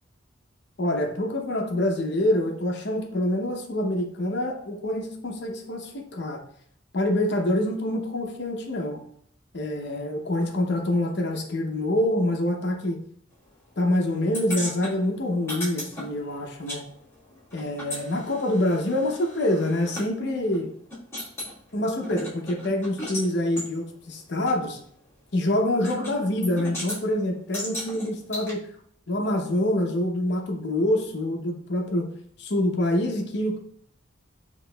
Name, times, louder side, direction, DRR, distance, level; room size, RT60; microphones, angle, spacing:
voice 1, 0.8-6.4 6.9-9.0 9.5-13.0 13.8-16.8 17.5-20.7 21.7-24.8 25.3-28.6 29.1-32.1 32.4-33.6, left 1 dB, 60° left, 2 dB, 0.7 m, -26 dB
sound 1, 14.3-16.8 17.1-20.1 20.5-20.6 20.9-21.5 22.0-23.3 23.6-23.7 24.5-24.6 25.8-26.1 26.4-27.0 27.5-28.5, left 1 dB, 15° left, 1.5 m, -36 dB
5.9 x 2.9 x 2.3 m, 0.63 s
head